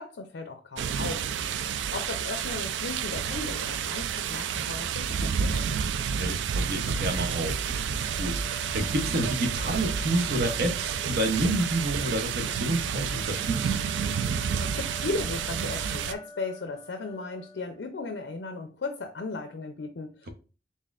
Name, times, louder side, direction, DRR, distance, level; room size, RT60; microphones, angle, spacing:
voice 1, 0.0-1.6 1.9-6.0 14.3-20.3, left 3 dB, 65° left, 0.5 m, -36 dB
sound 1, 0.8-16.1, right 7 dB, 75° right, 0.3 m, -30 dB
voice 2, 6.2-13.8, right 1 dB, 55° right, 0.7 m, -29 dB
sound 2, 7.9-17.9, left 3 dB, 25° left, 0.7 m, -47 dB
4.1 x 3.5 x 2.4 m
head